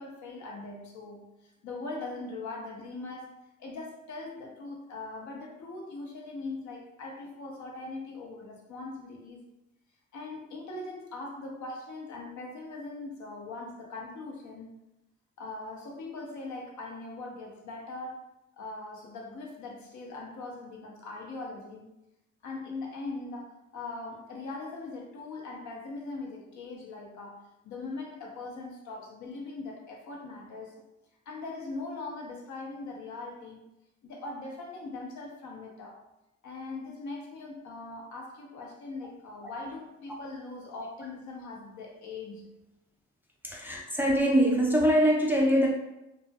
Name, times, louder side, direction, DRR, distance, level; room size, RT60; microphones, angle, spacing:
voice 1, 0.0-3.3 3.6-9.4 10.1-14.7 15.4-18.3 18.5-21.9 22.4-30.7 31.3-33.6 34.0-36.0 36.4-42.5, left 3 dB, 70° left, 0 dB, 0.7 m, -41 dB
voice 2, 43.4-45.7, equal, 5° right, -2 dB, 0.4 m, -23 dB
2.6 x 2.1 x 2.2 m, 0.93 s
cardioid pair, 90°, 30 cm